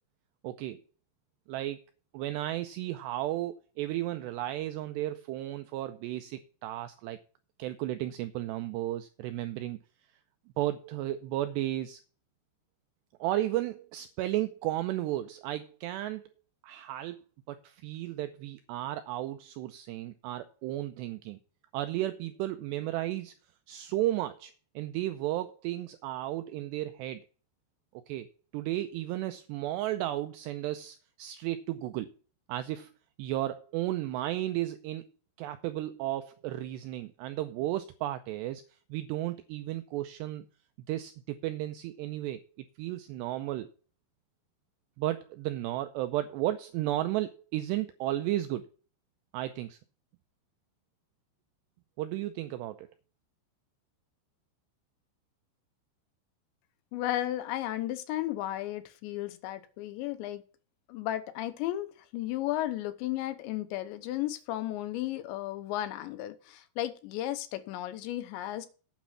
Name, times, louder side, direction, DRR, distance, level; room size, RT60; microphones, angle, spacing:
voice 1, 0.4-0.8 1.5-1.8 2.1-7.2 7.6-9.8 10.6-12.0 13.2-16.3 16.6-17.2 17.5-21.4 21.7-23.3 23.7-27.2 27.9-32.1 32.5-32.9 33.2-35.1 35.4-38.6 38.9-40.5 40.9-42.4 42.8-43.7 45.0-48.7 49.3-49.8 52.0-52.9, right 14 dB, 90° right, 2.4 m, -34 dB
voice 2, 56.9-60.4 60.9-68.7, left 14 dB, 80° left, 3.0 m, -34 dB
9.2 x 6.2 x 7.2 m
omnidirectional pair, 5.6 m